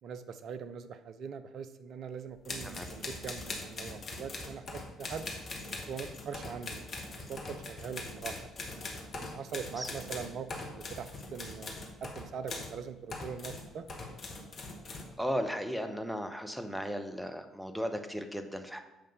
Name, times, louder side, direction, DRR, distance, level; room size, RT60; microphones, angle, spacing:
voice 1, 0.0-5.2 5.9-6.8 7.1-8.5 9.1-13.8, right 6 dB, 55° right, 11 dB, 0.6 m, -42 dB
sound 1, 2.4-12.8 13.1-15.1, left 2 dB, 45° left, 1.6 m, -42 dB
voice 2, 14.9-18.8, equal, 5° right, 7 dB, 1.0 m, -36 dB
7.8 x 5.3 x 5.4 m, 1.0 s
figure-of-eight pair, 50°, 0 cm